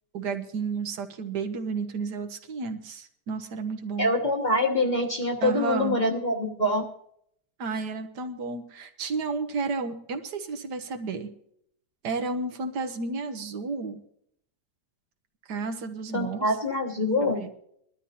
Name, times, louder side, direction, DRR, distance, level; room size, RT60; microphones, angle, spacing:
voice 1, 0.1-4.1 5.4-6.0 7.6-11.3 12.0-14.0 15.5-16.5 17.2-17.5, right 4 dB, 80° right, 7 dB, 1.7 m, -32 dB
voice 2, 4.0-6.8 16.1-17.4, left 1 dB, 30° left, 1 dB, 1.2 m, -25 dB
21.5 x 12.5 x 2.8 m, 0.70 s
omnidirectional pair, 1.7 m